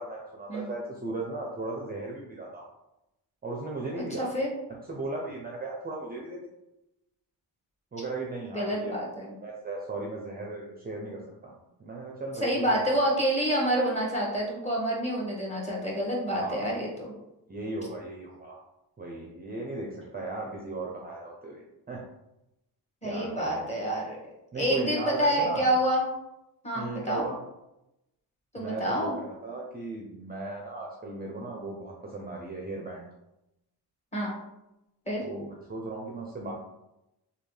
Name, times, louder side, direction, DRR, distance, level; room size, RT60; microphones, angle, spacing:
voice 1, 0.0-2.6 3.4-4.3 4.9-6.5 7.9-8.9 9.4-11.5 11.8-12.8 16.3-16.8 17.5-18.6 19.0-22.1 23.0-23.7 24.5-25.7 26.7-27.4 28.6-33.1 35.2-36.5, right 2 dB, 20° right, -1 dB, 0.6 m, -36 dB
voice 2, 4.2-4.5 8.5-9.4 12.4-17.1 23.0-24.2 24.6-26.0 26.6-27.2 28.5-29.2 34.1-34.4 35.1-35.2, equal, 15° left, -4 dB, 1.4 m, -28 dB
3.2 x 2.4 x 3.2 m, 0.90 s
cardioid pair, 60°, 42 cm